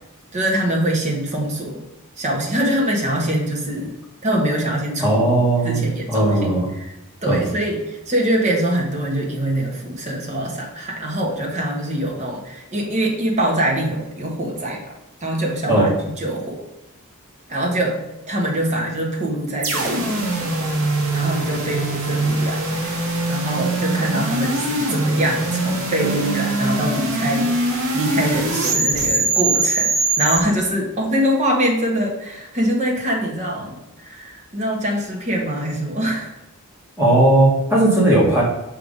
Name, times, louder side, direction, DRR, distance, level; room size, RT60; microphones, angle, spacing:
voice 1, 0.3-1.8 2.2-3.9 4.2-6.9 7.2-14.9 15.2-16.6 17.5-20.7 21.1-36.3, right 1 dB, 35° right, -1 dB, 1.4 m, -24 dB
voice 2, 5.0-5.8 6.1-6.7 7.2-7.4 15.7-15.9 37.0-38.4, right 1 dB, 10° right, -5 dB, 2.0 m, -16 dB
sound 1, 19.6-30.4, right 2 dB, 70° right, 1.3 m, -22 dB
5.6 x 3.6 x 5.3 m, 0.92 s
head